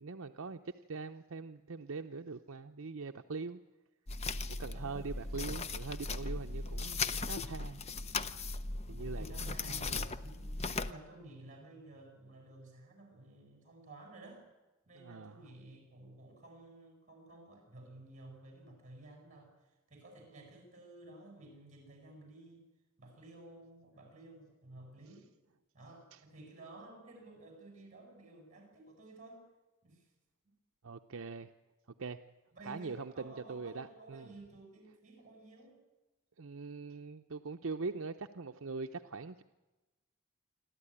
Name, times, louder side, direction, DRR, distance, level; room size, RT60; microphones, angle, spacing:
voice 1, 0.0-3.6 4.6-7.8 8.9-10.1 15.0-15.5 26.1-26.2 30.8-31.5 32.0-32.2 32.7-34.3 36.4-39.4, right 4 dB, 70° right, 6 dB, 0.7 m, -42 dB
sound 1, 4.1-10.9, left 3 dB, 30° left, 0.7 m, -38 dB
voice 2, 4.7-5.1 5.4-5.6 8.9-14.5 14.9-22.7 23.0-25.3 25.7-29.5 29.8-30.1 32.5-35.8, right 2 dB, 35° right, 3 dB, 7.2 m, -54 dB
27.0 x 12.5 x 10.0 m, 1.1 s
head